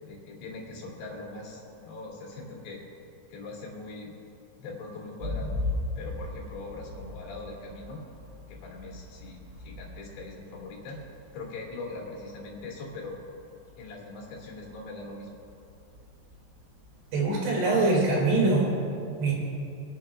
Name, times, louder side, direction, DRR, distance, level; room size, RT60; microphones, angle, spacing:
voice 1, 0.0-2.8 3.3-4.1 4.6-5.6 6.0-8.0 8.5-11.0 11.3-13.2 13.8-15.4, left 3 dB, 90° left, -2 dB, 4.5 m, -41 dB
sound 1, 5.2-17.3, left 2 dB, 35° right, 1.3 m, -39 dB
voice 2, 17.1-18.7 19.2-19.3, right 3 dB, 70° right, -4 dB, 4.6 m, -23 dB
27.5 x 10.0 x 2.4 m, 2.7 s
omnidirectional pair, 5.0 m